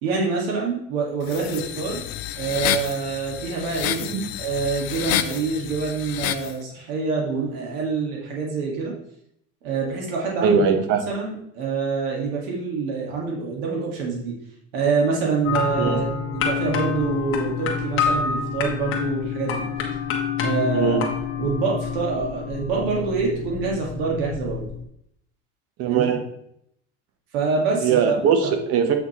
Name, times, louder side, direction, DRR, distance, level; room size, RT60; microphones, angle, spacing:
voice 1, 0.0-2.0 2.4-4.0 4.4-9.0 9.6-10.6 11.1-14.3 14.7-16.1 16.3-19.7 20.4-21.0 21.4-24.7 25.9-26.1 27.3-28.2, right 4 dB, 85° right, -1 dB, 2.1 m, -26 dB
sound 1, 1.2-6.5, left 13 dB, 80° left, 0.7 m, -29 dB
voice 2, 10.4-11.0 15.8-16.0 20.7-21.1 25.8-26.2 27.8-28.9, right 6 dB, 55° right, 6 dB, 1.2 m, -20 dB
sound 2, 15.4-24.8, left 6 dB, 45° left, 1.5 m, -27 dB
8.0 x 6.0 x 3.1 m, 0.73 s
cardioid pair, 140°, 29 cm